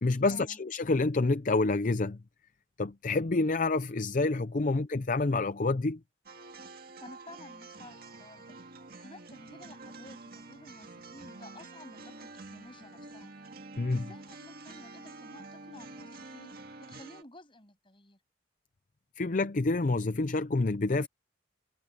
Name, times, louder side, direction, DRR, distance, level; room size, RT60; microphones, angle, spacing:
voice 1, 0.0-2.2 2.8-6.0 13.8-14.0 19.2-21.1, left 3 dB, 45° left, 0.6 m, -28 dB
sound 1, 6.3-17.2, right 3 dB, 50° right, 1.9 m, -48 dB
voice 2, 7.0-8.6 8.9-13.3 13.9-16.5 16.8-18.2, left 1 dB, 25° left, 7.6 m, -52 dB
head